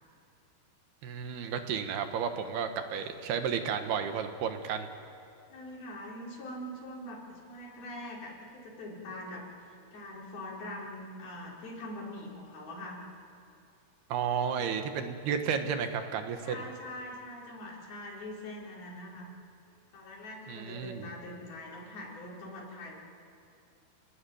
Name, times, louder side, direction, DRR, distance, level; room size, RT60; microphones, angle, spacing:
voice 1, 1.0-4.9 14.1-16.6 20.5-21.1, right 7 dB, 70° right, 7 dB, 3.2 m, -32 dB
voice 2, 5.5-13.0 14.4-14.6 16.5-19.3 19.9-22.9, left 1 dB, 60° left, -4 dB, 6.9 m, -43 dB
29.0 x 20.5 x 9.4 m, 2.6 s
omnidirectional pair, 5.0 m